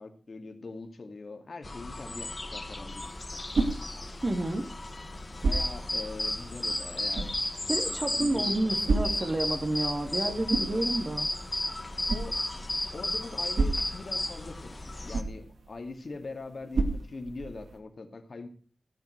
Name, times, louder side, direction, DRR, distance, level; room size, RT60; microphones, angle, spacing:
voice 1, 0.0-3.1 5.4-7.3 8.1-8.7 12.1-12.4 12.9-18.5, left 3 dB, 60° left, 5 dB, 2.4 m, -42 dB
sound 1, 1.6-15.2, left 2 dB, 35° left, 1.4 m, -40 dB
sound 2, 2.9-17.8, right 3 dB, 90° right, 2.2 m, -35 dB
voice 2, 4.2-4.6 7.7-11.3, right 1 dB, 40° right, 5 dB, 2.4 m, -30 dB
sound 3, 5.5-14.3, left 1 dB, 20° left, 2.0 m, -31 dB
16.0 x 9.1 x 4.7 m, 0.44 s
wide cardioid pair, 90°, 0 cm